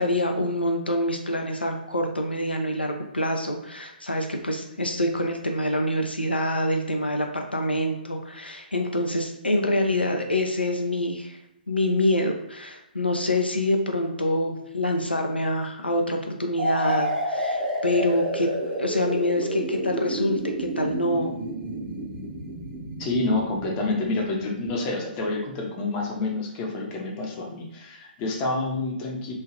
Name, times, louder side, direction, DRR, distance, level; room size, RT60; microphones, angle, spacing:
voice 1, 0.0-11.4 11.7-18.5 18.8-21.4, left 1 dB, 85° left, 3 dB, 0.4 m, -26 dB
sound 1, 16.6-24.2, right 1 dB, 50° right, 1.0 m, -30 dB
voice 2, 23.0-29.3, left 2 dB, 25° left, 0 dB, 0.6 m, -28 dB
3.1 x 2.4 x 2.4 m, 0.83 s
figure-of-eight pair, 125°, 5 cm